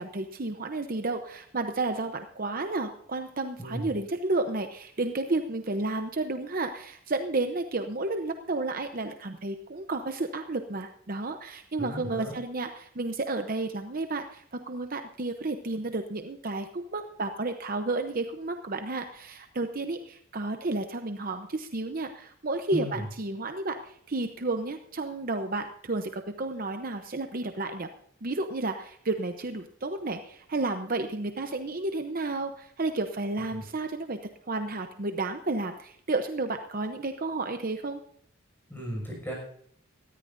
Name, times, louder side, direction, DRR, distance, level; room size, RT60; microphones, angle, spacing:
voice 1, 0.0-27.9 28.2-34.2 34.5-38.0, right 2 dB, 40° right, 6 dB, 0.8 m, -32 dB
voice 2, 3.6-3.9 11.8-12.3 22.7-23.1 33.5-33.6 38.7-39.3, equal, 10° left, -1 dB, 6.1 m, -35 dB
18.5 x 13.5 x 2.6 m, 0.64 s
head